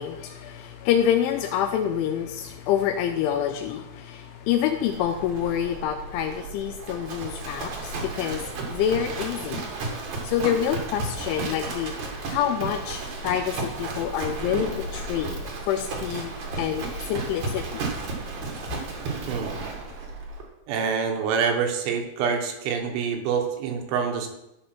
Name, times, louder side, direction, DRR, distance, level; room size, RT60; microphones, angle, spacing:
voice 1, 0.0-9.7 10.2-11.9 12.3-15.4 15.7-17.8, left 9 dB, 85° left, 6 dB, 2.8 m, -27 dB
Livestock farm animals working animals, 4.9-20.4, right 3 dB, 55° right, 2.0 m, -33 dB
voice 2, 20.7-24.3, right 6 dB, 75° right, 3 dB, 3.6 m, -26 dB
13.0 x 5.4 x 6.0 m, 0.89 s
omnidirectional pair, 5.8 m